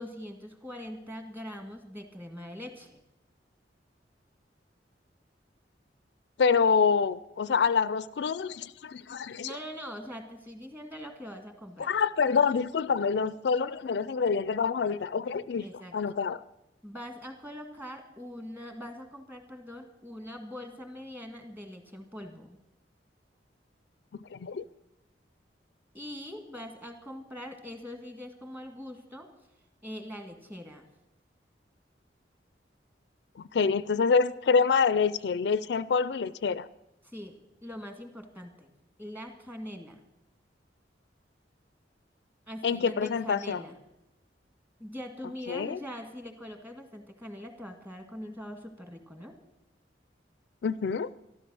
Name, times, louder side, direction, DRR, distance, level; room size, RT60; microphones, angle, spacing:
voice 1, 0.0-3.0 9.4-11.9 15.6-15.9 16.8-22.6 25.9-29.3 29.8-30.9 37.0-38.7 39.0-40.0 42.5-43.8 44.8-49.4, equal, 10° right, 5 dB, 1.7 m, -42 dB
voice 2, 6.4-9.6 11.8-15.7 15.9-16.4 24.3-24.6 33.4-36.7 42.6-43.6 45.5-45.8 50.6-51.1, left 5 dB, 65° left, 17 dB, 0.4 m, -26 dB
13.5 x 12.5 x 6.2 m, 0.89 s
head